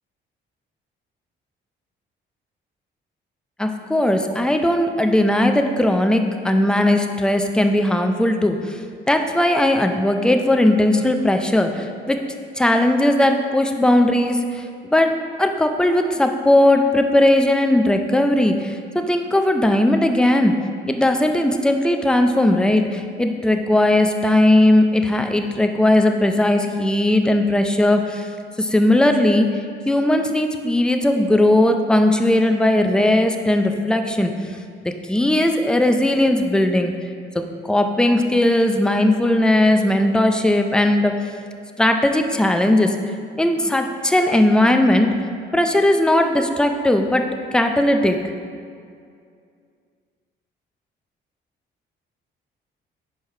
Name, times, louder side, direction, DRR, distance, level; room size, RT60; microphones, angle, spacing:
voice 1, 3.6-8.8 9.1-12.2 12.6-20.6 20.8-28.3 28.6-29.6 29.9-34.3 34.8-36.9 37.7-41.1 41.8-43.0 43.4-45.1 45.5-47.3 47.5-48.2, left 1 dB, 5° left, 5 dB, 0.5 m, -18 dB
4.8 x 4.6 x 5.5 m, 2.3 s
cardioid pair, 90°, 20 cm